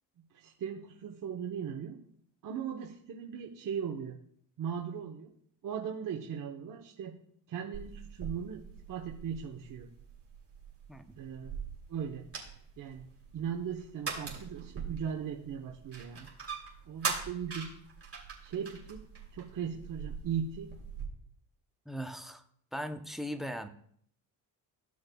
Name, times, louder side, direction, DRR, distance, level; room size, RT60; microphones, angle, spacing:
voice 1, 0.3-2.0 2.4-4.2 4.6-5.3 5.6-7.1 7.5-9.9 11.2-11.5 11.9-12.3 12.8-13.1 13.3-16.3 16.9-17.7 18.4-19.0 19.3-20.7, right 7 dB, 50° right, 1 dB, 1.0 m, -38 dB
sound 1, 7.7-21.1, right 5 dB, 30° right, 2.6 m, -42 dB
voice 2, 21.9-22.4 22.7-23.7, equal, ahead, 8 dB, 0.6 m, -39 dB
15.0 x 6.4 x 2.3 m, 0.63 s
cardioid pair, 95°, 42 cm